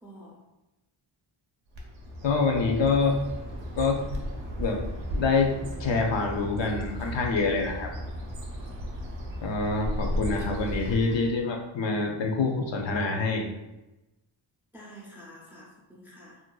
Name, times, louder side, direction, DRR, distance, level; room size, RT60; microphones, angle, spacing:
voice 1, 0.0-0.4 8.6-8.8 14.7-16.4, equal, 5° right, -4 dB, 0.3 m, -48 dB
Bird, 1.7-11.4, equal, 65° right, 0.6 m, -35 dB
voice 2, 2.2-3.2 3.7-4.0 4.6-4.8 5.1-5.5 5.8-7.9 9.4-13.4, left 4 dB, 65° left, 1 dB, 0.5 m, -26 dB
2.6 x 2.1 x 2.3 m, 1.0 s
wide cardioid pair, 140°, 48 cm